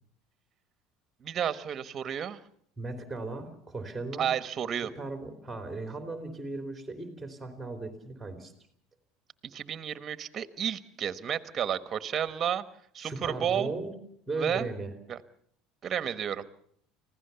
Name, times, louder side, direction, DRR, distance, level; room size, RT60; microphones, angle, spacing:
voice 1, 1.2-2.4 4.2-4.9 9.5-12.6 12.9-13.7 14.4-14.7 15.1-15.2 15.8-16.4, right 9 dB, 35° right, 13 dB, 1.3 m, -31 dB
voice 2, 2.8-4.3 4.8-8.5 13.0-13.9 14.3-14.9, right 2 dB, ahead, 6 dB, 3.1 m, -37 dB
25.5 x 16.0 x 6.9 m, 0.68 s
supercardioid pair, 125°, 0 cm